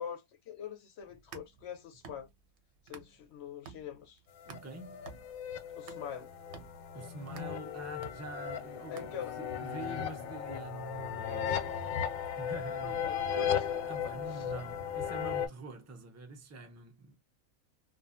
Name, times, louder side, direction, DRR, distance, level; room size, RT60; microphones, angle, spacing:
voice 1, 0.0-2.3 2.9-4.2 5.7-6.3 8.9-9.4 12.8-13.7 14.3-14.5, left 7 dB, 65° left, 0.7 m, -43 dB
sound 1, 1.0-3.3 3.7-9.6, right 6 dB, 60° right, 0.8 m, -52 dB
sound 2, 4.4-15.5, left 8 dB, 85° left, 1.0 m, -36 dB
voice 2, 4.4-5.1 6.9-11.8 12.4-13.1 13.9-17.2, right 3 dB, 25° right, 0.3 m, -45 dB
2.4 x 2.4 x 2.4 m
omnidirectional pair, 1.5 m